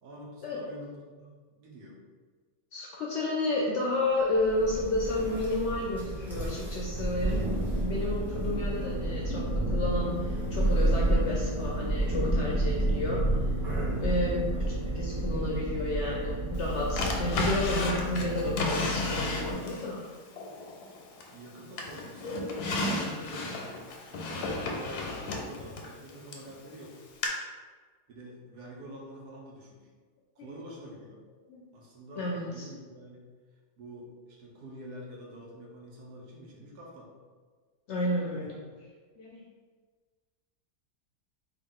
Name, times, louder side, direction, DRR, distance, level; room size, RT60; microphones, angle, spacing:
voice 1, 0.0-2.0 14.5-14.7 20.9-21.0 21.3-22.7 23.0-23.8 24.1-27.0 28.1-29.9 30.3-31.2 31.7-33.3 33.8-37.1 38.3-38.5, equal, 85° right, -3 dB, 1.4 m, -46 dB
voice 2, 2.7-7.5 7.8-13.5 14.0-14.5 14.9-20.0 30.4-30.5 31.5-31.6 32.2-32.6 37.9-38.5 39.2-39.5, left 2 dB, 70° left, -3 dB, 0.7 m, -31 dB
Thunder, 4.4-18.0, right 1 dB, ahead, 0.7 m, -30 dB
sound 1, 8.6-19.5, equal, 50° right, 1.1 m, -38 dB
Drawer open or close, 17.0-19.9 20.4-21.4 21.8-26.5 27.2-27.3, left 2 dB, 90° left, 1.1 m, -33 dB
3.8 x 2.3 x 3.6 m, 1.5 s
omnidirectional pair, 1.6 m